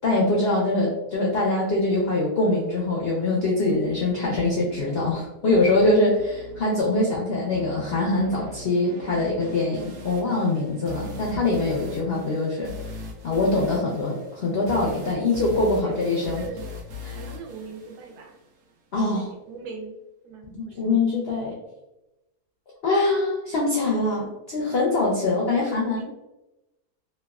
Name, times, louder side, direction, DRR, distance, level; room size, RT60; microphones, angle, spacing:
voice 1, 0.0-12.7 13.2-16.4 17.0-17.2 18.9-19.3 20.8-21.6 22.8-26.0, left 2 dB, 75° left, -3 dB, 0.5 m, -23 dB
sound 1, 3.7-18.7, left 2 dB, 65° right, 0.8 m, -41 dB
voice 2, 16.3-16.8 17.1-18.4 19.0-20.0 20.2-21.0 25.6-26.1, right 4 dB, 80° right, 2 dB, 1.1 m, -40 dB
3.2 x 2.3 x 2.3 m, 0.97 s
omnidirectional pair, 1.7 m